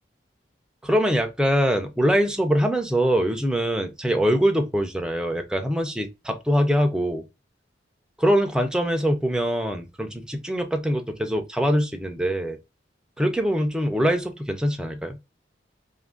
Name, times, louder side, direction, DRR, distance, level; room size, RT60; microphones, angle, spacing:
voice 1, 0.8-7.2 8.2-12.6 13.2-15.2, equal, 5° right, 0.4 m, -23 dB
2.6 x 2.5 x 3.6 m
head